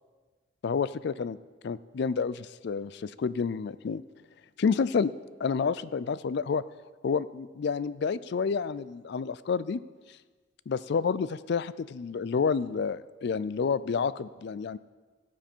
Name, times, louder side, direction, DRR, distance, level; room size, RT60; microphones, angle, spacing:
voice 1, 0.6-1.4 1.6-4.0 4.6-5.1 5.4-6.6 7.0-9.8 10.7-14.8, left 5 dB, 55° left, 17 dB, 0.3 m, -29 dB
17.5 x 7.4 x 4.5 m, 1.4 s
head